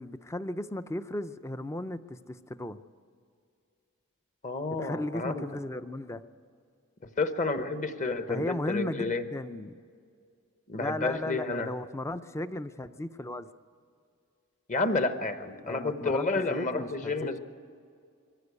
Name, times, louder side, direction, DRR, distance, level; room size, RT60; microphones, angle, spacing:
voice 1, 0.0-2.8 4.7-6.2 8.3-9.8 10.7-13.5 15.6-17.4, left 1 dB, 10° left, 13 dB, 0.5 m, -36 dB
voice 2, 4.4-5.4 7.2-9.2 10.7-11.7 14.7-17.4, left 3 dB, 35° left, 9 dB, 1.0 m, -30 dB
22.5 x 15.0 x 8.2 m, 2.3 s
head